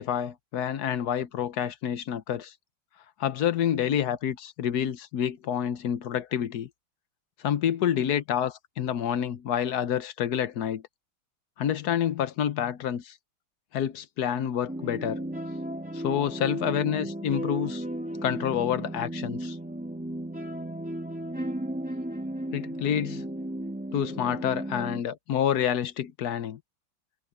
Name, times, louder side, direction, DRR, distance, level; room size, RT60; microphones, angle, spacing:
voice 1, 0.0-2.5 3.2-6.7 7.4-10.8 11.6-13.2 13.7-15.2 15.9-17.8 18.2-19.6 22.5-23.3 23.9-26.6, left 9 dB, 60° left, 1.2 m, -28 dB
sound 1, 14.7-25.0, right 1 dB, 5° right, 2.4 m, -34 dB
omnidirectional pair, 2.2 m